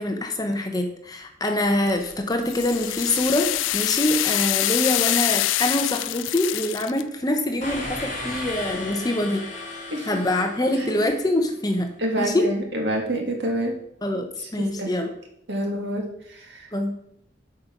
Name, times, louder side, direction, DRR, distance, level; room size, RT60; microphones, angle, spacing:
voice 1, 0.0-11.9 12.2-12.5 14.0-15.1 16.7-17.0, left 1 dB, 20° left, 5 dB, 0.8 m, -25 dB
sound 1, 1.9-7.0, left 16 dB, 90° left, 0.3 m, -25 dB
sound 2, 7.6-11.4, left 2 dB, 40° left, 3.3 m, -35 dB
voice 2, 12.0-13.7 14.4-14.9 15.5-16.0 16.3-16.7, right 1 dB, 65° right, 1 dB, 2.1 m, -27 dB
8.1 x 5.2 x 6.1 m, 0.75 s
head